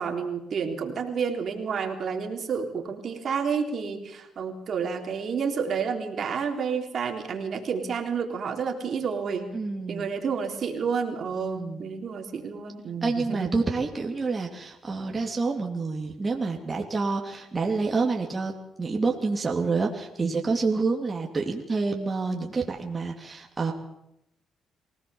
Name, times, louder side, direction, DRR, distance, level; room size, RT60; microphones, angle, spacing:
voice 1, 0.0-9.5 9.9-13.6, right 6 dB, 55° right, 4 dB, 3.6 m, -30 dB
voice 2, 9.5-10.1 11.5-11.8 13.0-18.5 18.8-23.7, right 4 dB, 30° right, 1 dB, 2.9 m, -28 dB
24.0 x 17.5 x 7.1 m, 0.82 s
cardioid pair, 90°, 0 cm